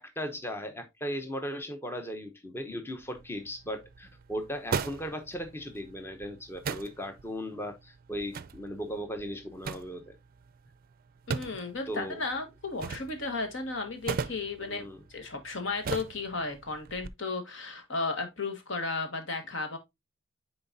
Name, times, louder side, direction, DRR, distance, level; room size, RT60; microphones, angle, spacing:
voice 1, 0.0-10.2 11.9-12.2 14.6-15.0, equal, 10° left, 0.7 m, -37 dB
sound 1, 3.0-17.1, right 5 dB, 45° right, 0.4 m, -40 dB
voice 2, 11.3-19.8, left 3 dB, 65° left, 1.5 m, -34 dB
9.5 x 4.0 x 2.6 m
head